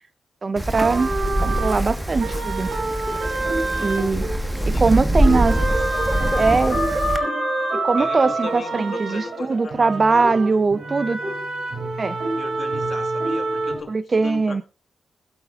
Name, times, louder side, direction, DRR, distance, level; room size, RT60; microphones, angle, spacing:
voice 1, 0.4-1.1 1.4-2.7 3.8-4.2 4.7-5.6 6.4-6.8 7.7-11.2 12.0-12.2 13.9-14.6, right 4 dB, 35° right, 0.5 m, -21 dB
Wind, 0.6-7.2, right 1 dB, 10° right, 1.3 m, -24 dB
sound 1, 0.8-4.9 5.2-13.8, right 3 dB, 65° right, 3.3 m, -27 dB
voice 2, 3.7-4.8 5.3-5.4 8.0-10.5 12.3-14.6, left 5 dB, 50° left, 2.3 m, -37 dB
sound 2, 5.4-9.5, left 5 dB, 70° left, 2.9 m, -31 dB
21.0 x 8.2 x 2.4 m
wide cardioid pair, 140°, 0 cm